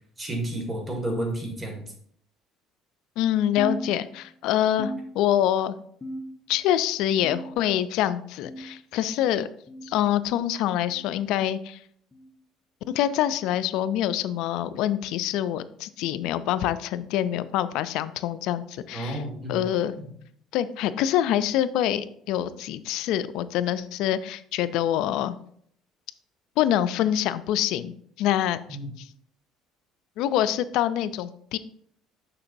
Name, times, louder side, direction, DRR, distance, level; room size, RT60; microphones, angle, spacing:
voice 1, 0.2-1.8 18.9-19.6 20.0-20.1 28.7-28.9, right 1 dB, 20° right, 1 dB, 2.0 m, -31 dB
voice 2, 3.2-5.8 6.5-9.5 9.8-11.8 12.9-19.2 19.5-19.9 20.5-25.4 26.6-28.6 29.0-29.1 30.2-31.6, left 11 dB, 75° left, 14 dB, 0.4 m, -25 dB
sound 1, 3.6-4.4 4.8-5.6 6.0-6.6 7.2-7.8 8.4-8.8 9.7-9.9 10.9-11.1 12.1-12.3 13.3-13.5 14.5-14.7 15.8-15.9 17.0-17.1 18.2-18.3, equal, 20° left, 0.8 m, -38 dB
6.8 x 5.9 x 2.6 m, 0.64 s
cardioid pair, 110°, 0 cm